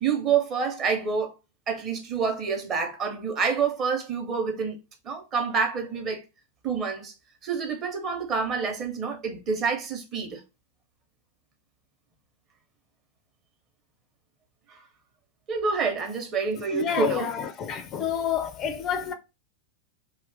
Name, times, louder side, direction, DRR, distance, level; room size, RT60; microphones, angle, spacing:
voice 1, 0.0-1.3 1.7-4.8 5.0-6.2 6.6-7.1 7.4-10.4 14.7-14.8 15.5-17.3, right 5 dB, 30° right, 0.8 m, -27 dB
voice 2, 16.5-19.1, left 7 dB, 30° left, 0.3 m, -29 dB
2.7 x 2.4 x 3.3 m
figure-of-eight pair, 90°, 0 cm